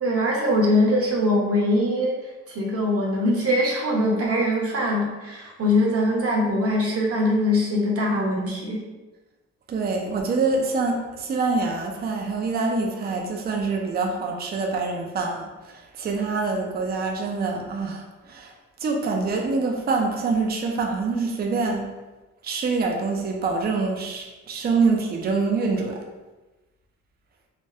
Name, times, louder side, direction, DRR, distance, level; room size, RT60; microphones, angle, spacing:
voice 1, 0.0-2.2 2.5-8.8, left 1 dB, 50° right, -2 dB, 0.9 m, -22 dB
voice 2, 9.7-18.5 18.8-21.9 22.4-26.0, right 4 dB, 30° right, 2 dB, 0.5 m, -25 dB
3.3 x 2.2 x 2.7 m, 1.2 s
cardioid pair, 90°, 30 cm